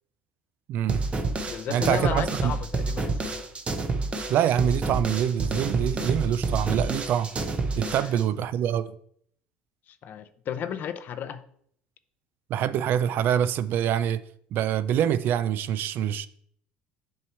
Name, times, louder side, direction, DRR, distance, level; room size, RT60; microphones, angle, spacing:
voice 1, 0.7-1.0 1.7-2.5 4.3-7.3 7.8-8.9 12.5-14.2 14.5-16.3, right 10 dB, 55° right, 0.4 m, -25 dB
sound 1, 0.9-8.2, right 3 dB, 30° right, 0.8 m, -29 dB
voice 2, 1.5-3.4 8.0-8.2 9.9-11.4, left 8 dB, 50° left, 0.5 m, -34 dB
7.3 x 3.1 x 4.4 m
supercardioid pair, 85°, 4 cm